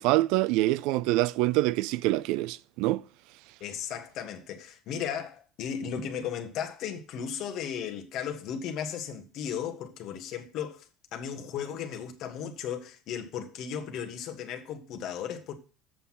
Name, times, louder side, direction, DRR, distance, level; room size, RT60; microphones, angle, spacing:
voice 1, 0.0-3.0, right 18 dB, 65° right, 0.4 m, -25 dB
voice 2, 3.6-10.8 11.1-15.5, left 8 dB, 45° left, 1.5 m, -35 dB
7.7 x 6.9 x 5.7 m
cardioid pair, 155°, 0 cm